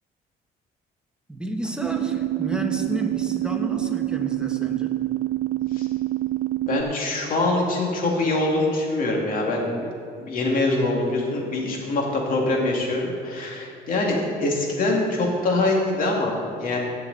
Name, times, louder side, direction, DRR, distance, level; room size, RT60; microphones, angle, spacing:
voice 1, 1.3-5.0, right 1 dB, 5° right, 2 dB, 1.2 m, -31 dB
sound 1, 1.8-6.8, right 16 dB, 55° right, 0.4 m, -26 dB
voice 2, 6.7-9.9 10.2-16.8, left 2 dB, 55° left, -1 dB, 2.6 m, -24 dB
17.0 x 6.7 x 4.2 m, 2.5 s
cardioid pair, 110°, 17 cm